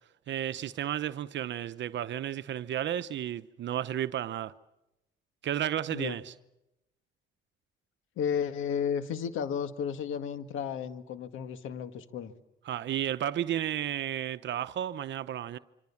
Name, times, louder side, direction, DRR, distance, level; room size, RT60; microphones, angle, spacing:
voice 1, 0.3-4.5 5.4-6.3 12.7-15.6, right 11 dB, 65° right, 0.9 m, -32 dB
voice 2, 8.2-12.3, left 7 dB, 85° left, 2.0 m, -33 dB
26.5 x 26.0 x 7.2 m
cardioid pair, 90°, 20 cm